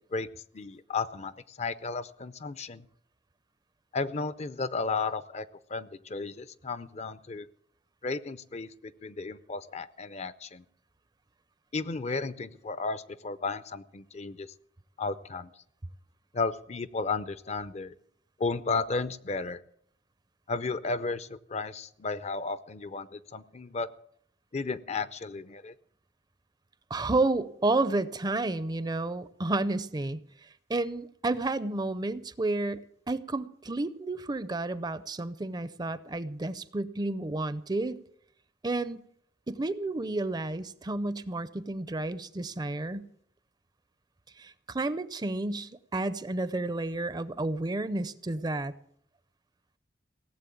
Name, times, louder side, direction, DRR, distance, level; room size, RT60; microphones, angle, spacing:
voice 1, 0.5-2.8 3.9-7.5 8.0-10.6 11.7-14.5 15.0-15.5 16.3-17.9 18.4-19.6 20.5-23.9 24.5-25.7, left 4 dB, 40° left, 15 dB, 0.5 m, -34 dB
voice 2, 26.9-30.2 30.7-38.0 38.6-39.0 39.5-43.1 44.4-48.7, right 2 dB, 25° right, 15 dB, 0.5 m, -31 dB
17.5 x 7.4 x 8.5 m, 0.68 s
head